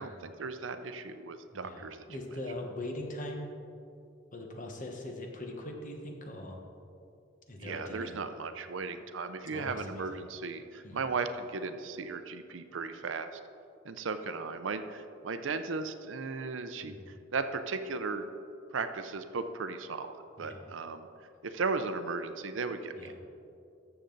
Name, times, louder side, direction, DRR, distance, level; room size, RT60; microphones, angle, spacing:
voice 1, 0.0-2.0 7.6-13.4 13.8-18.2 18.7-21.1 21.4-23.1, right 4 dB, 70° right, 9 dB, 0.6 m, -36 dB
voice 2, 1.5-3.5 4.3-6.6 7.5-8.1 9.5-10.2 10.8-11.0 16.8-17.1 20.4-20.7 23.0-23.1, left 1 dB, 40° left, 2 dB, 1.2 m, -41 dB
13.0 x 7.0 x 3.9 m, 2.6 s
head